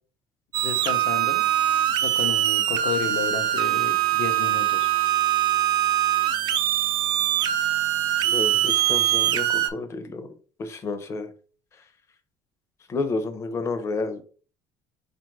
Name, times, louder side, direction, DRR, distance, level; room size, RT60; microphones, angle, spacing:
sound 1, 0.5-9.7, right 12 dB, 50° right, 0.5 m, -23 dB
voice 1, 0.6-1.5 2.0-4.9, left 7 dB, 65° left, 8 dB, 0.8 m, -32 dB
voice 2, 8.2-10.3 10.6-11.3 12.9-14.2, left 3 dB, 30° left, 8 dB, 0.7 m, -30 dB
4.4 x 2.6 x 4.5 m, 0.41 s
cardioid pair, 145°, 9 cm